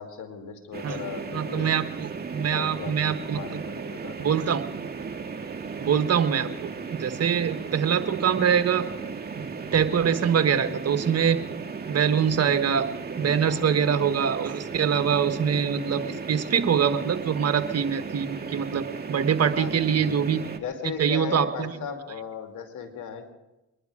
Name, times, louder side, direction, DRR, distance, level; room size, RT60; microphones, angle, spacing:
voice 1, 0.0-1.7 2.3-4.4 13.4-13.9 15.0-15.2 19.5-20.3 20.6-23.3, left 6 dB, 75° left, 4 dB, 2.5 m, -37 dB
sound 1, 0.7-20.6, right 5 dB, 30° right, 1.7 m, -36 dB
voice 2, 1.3-3.6 4.2-4.6 5.8-8.9 9.3-9.4 9.7-11.4 11.9-12.9 13.2-20.4 21.0-21.8, right 7 dB, 55° right, 9 dB, 1.4 m, -24 dB
23.5 x 11.0 x 4.9 m, 0.98 s
supercardioid pair, 65°, 31 cm